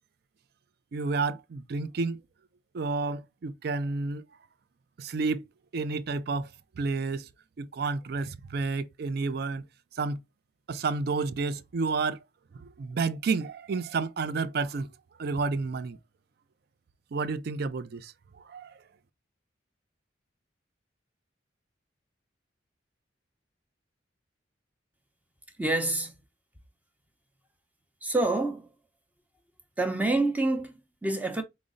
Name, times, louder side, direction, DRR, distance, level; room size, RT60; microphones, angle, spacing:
voice 1, 0.9-2.2 2.7-4.2 5.0-5.4 5.7-6.5 6.8-7.3 7.6-9.6 9.9-10.2 10.7-12.2 12.6-14.9 15.2-16.0 17.1-18.7, right 4 dB, 55° right, 0.4 m, -30 dB
voice 2, 25.6-26.2 28.0-28.7 29.8-31.4, right 2 dB, 10° right, 0.6 m, -27 dB
5.1 x 2.0 x 3.7 m
head